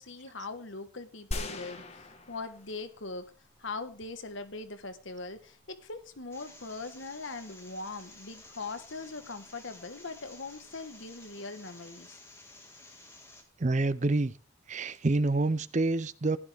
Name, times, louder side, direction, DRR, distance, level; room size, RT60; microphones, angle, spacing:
voice 1, 0.0-3.3 3.6-12.2, left 3 dB, 65° left, 1.3 m, -41 dB
sound 1, 1.3-3.1 3.6-3.7, left 1 dB, 30° left, 1.4 m, -39 dB
sound 2, 6.3-13.4, left 2 dB, 10° left, 1.9 m, -53 dB
voice 2, 13.6-14.3 14.7-16.4, right 2 dB, 35° right, 0.5 m, -27 dB
15.5 x 11.0 x 3.5 m
head